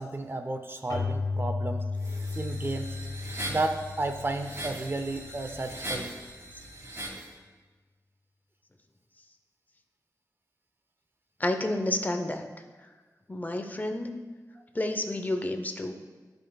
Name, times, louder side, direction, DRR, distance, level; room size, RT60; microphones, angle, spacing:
voice 1, 0.0-1.8 2.4-3.0 3.5-6.2, right 2 dB, 35° right, 6 dB, 0.5 m, -32 dB
Keyboard (musical), 0.9-5.4, left 3 dB, 70° left, 1.0 m, -34 dB
sound 1, 2.0-7.3, right 1 dB, 50° right, 2.1 m, -40 dB
voice 2, 11.4-12.4 13.3-14.2 14.7-15.9, left 1 dB, 25° left, 5 dB, 0.6 m, -30 dB
11.5 x 5.3 x 2.2 m, 1.3 s
wide cardioid pair, 90°, 7 cm